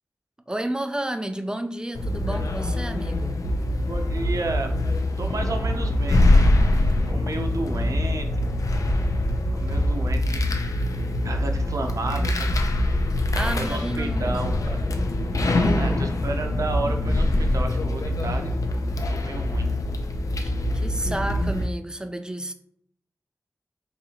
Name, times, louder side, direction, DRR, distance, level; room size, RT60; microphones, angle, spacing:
voice 1, 0.5-3.5 13.3-14.4 15.6-16.0 20.4-22.5, right 1 dB, 15° right, 0.4 m, -31 dB
sound 1, 1.9-21.7, left 1 dB, 75° left, 0.4 m, -24 dB
voice 2, 3.9-4.7 5.2-6.5 7.1-8.5 9.5-10.4 11.2-12.5 13.4-14.8 15.8-18.5 19.1-19.7, right 2 dB, 75° right, 0.5 m, -32 dB
3.9 x 2.7 x 2.8 m
cardioid pair, 50°, 6 cm